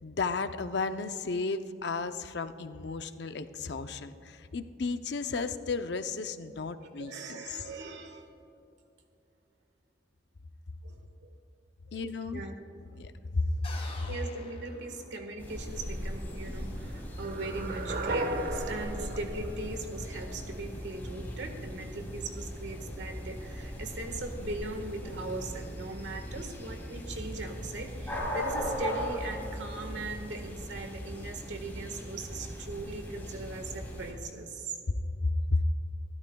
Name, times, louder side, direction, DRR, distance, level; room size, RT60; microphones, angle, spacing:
voice 1, 0.0-7.6 11.9-12.4 12.9-13.7 14.0-14.1 18.9-19.1 35.5-35.6, left 3 dB, 65° left, 9 dB, 0.6 m, -33 dB
voice 2, 6.8-8.3 10.8-11.3 11.9-12.0 12.3-12.5 14.1-34.8, right 2 dB, 75° right, 5 dB, 1.5 m, -39 dB
sound 1, 13.6-15.6, left 3 dB, 35° left, 1.8 m, -46 dB
sound 2, 15.4-34.1, equal, 10° left, 2.9 m, -39 dB
sound 3, 17.2-20.3, right 1 dB, 55° right, 0.9 m, -35 dB
27.0 x 13.0 x 2.3 m, 2.7 s
head